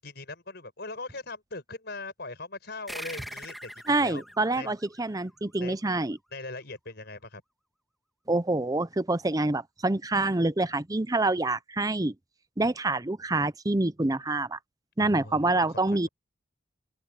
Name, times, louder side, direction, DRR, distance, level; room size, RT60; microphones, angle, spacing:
voice 1, 0.0-4.2 4.6-4.7 5.6-5.8 6.3-7.4 15.0-16.1, left 3 dB, 55° left, 6.0 m, -40 dB
sound 1, 2.9-5.9, equal, ahead, 2.2 m, -43 dB
voice 2, 3.9-6.2 8.3-12.1 12.6-14.6 15.0-16.1, right 2 dB, 20° right, 0.6 m, -26 dB
open air
head